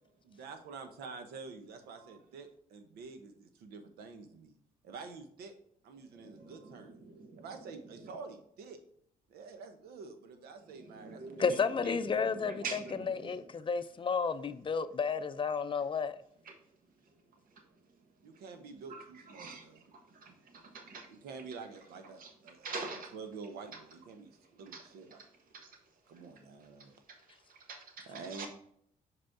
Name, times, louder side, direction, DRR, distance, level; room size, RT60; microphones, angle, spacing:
voice 1, 0.2-4.6 4.8-5.5 5.8-7.0 7.4-8.8 9.3-11.7 18.2-19.8 21.1-22.7 23.1-25.2 26.1-26.9 28.0-28.5, right 4 dB, 85° right, 1.0 m, -48 dB
voice 2, 6.1-7.4 10.8-11.6 11.8-13.4 18.9-19.0 19.3-19.7 20.1-20.3 20.6-21.1 22.2-22.3 22.6-23.1 23.7-23.8 24.7-24.8 25.6-25.7 27.5-28.0 28.3-28.5, right 4 dB, 65° right, 1.4 m, -44 dB
voice 3, 11.4-16.2, left 5 dB, 35° left, 0.5 m, -32 dB
6.2 x 5.1 x 3.7 m
cardioid pair, 75°, 16 cm